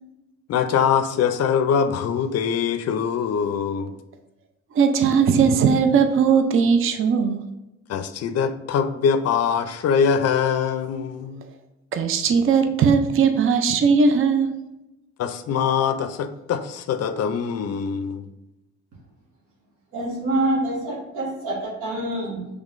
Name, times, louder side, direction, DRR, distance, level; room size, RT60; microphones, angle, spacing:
voice 1, 0.5-4.0 7.9-11.4 15.2-18.3, left 7 dB, 55° left, 10 dB, 0.5 m, -23 dB
voice 2, 4.7-7.5 11.9-14.5, right 6 dB, 45° right, 6 dB, 0.5 m, -18 dB
voice 3, 19.9-22.5, right 1 dB, 85° right, -2 dB, 1.4 m, -26 dB
5.4 x 3.4 x 2.5 m, 0.96 s
cardioid pair, 90°, 30 cm